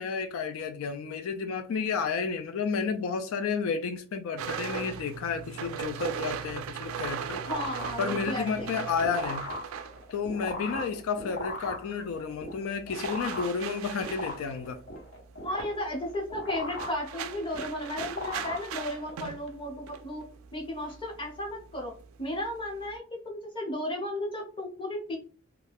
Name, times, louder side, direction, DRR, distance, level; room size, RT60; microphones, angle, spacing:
voice 1, 0.0-7.4 8.0-9.5 10.1-14.8, left 5 dB, 85° left, 0.3 m, -31 dB
sound 1, 4.4-11.1 11.3-23.0, right 8 dB, 80° right, 0.3 m, -39 dB
sound 2, 6.8-19.2, left 1 dB, 60° left, 1.0 m, -39 dB
voice 2, 7.5-8.7 15.4-20.2 20.5-21.9 22.2-25.2, left 1 dB, 25° left, 0.9 m, -34 dB
2.4 x 2.2 x 3.3 m
head